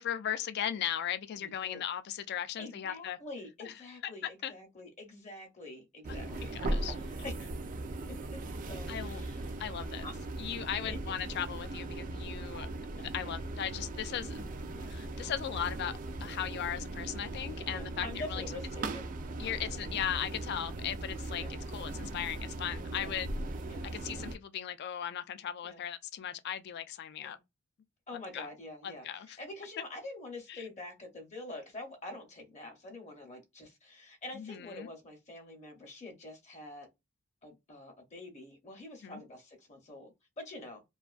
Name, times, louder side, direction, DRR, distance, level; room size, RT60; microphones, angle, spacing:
voice 1, 0.0-3.2 3.6-3.7 4.4-4.5 6.3-7.0 8.9-9.2 9.6-10.1 10.4-12.7 13.1-14.5 14.9-18.4 19.4-23.3 23.8-27.4 28.3-28.5 28.8-29.4 30.5-30.6 34.3-34.9 39.0-39.2, left 9 dB, 50° left, 0.3 m, -37 dB
voice 2, 1.4-1.8 2.6-7.4 8.3-8.4 8.7-9.5 10.0-10.2 10.8-11.0 13.2-13.4 14.7-14.9 16.7-16.9 17.7-19.1 19.4-19.7 21.4-21.5 23.0-23.1 23.7-23.9 25.6-25.8 27.2-27.4 28.1-36.9 37.4-40.8, left 2 dB, 35° left, 0.7 m, -46 dB
sound 1, 6.0-24.4, right 2 dB, 40° right, 0.3 m, -39 dB
2.5 x 2.2 x 2.3 m
head